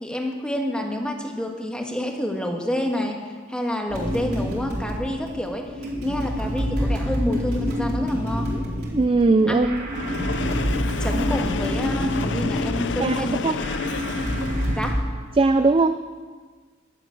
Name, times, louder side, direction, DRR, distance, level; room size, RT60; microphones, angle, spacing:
voice 1, 0.0-3.2 3.5-5.7 6.0-8.6 9.5-9.7 11.0-13.6 14.7-15.0, left 1 dB, 5° left, 2 dB, 1.4 m, -28 dB
sound 1, 3.9-14.9, equal, 60° right, 4.0 m, -27 dB
voice 2, 8.9-9.7 13.0-13.6 15.4-16.0, right 3 dB, 30° right, 10 dB, 0.4 m, -19 dB
Train, 9.9-14.9, left 5 dB, 70° left, 0.5 m, -30 dB
12.0 x 7.9 x 9.3 m, 1.5 s
head